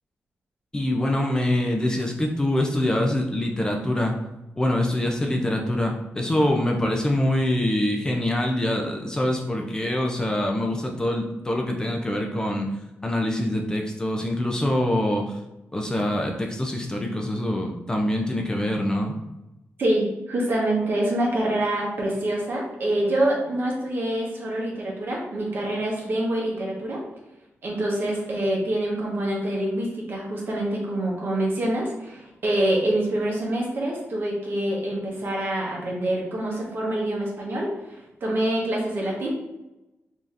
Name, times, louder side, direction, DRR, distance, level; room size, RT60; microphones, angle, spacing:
voice 1, 0.7-4.1 4.6-12.7 13.0-15.4 15.7-19.2, left 1 dB, 15° left, 1 dB, 0.4 m, -24 dB
voice 2, 19.8-27.0 27.6-39.3, right 1 dB, 50° right, -2 dB, 1.1 m, -26 dB
5.0 x 2.7 x 2.5 m, 0.97 s
wide cardioid pair, 150°, 5 cm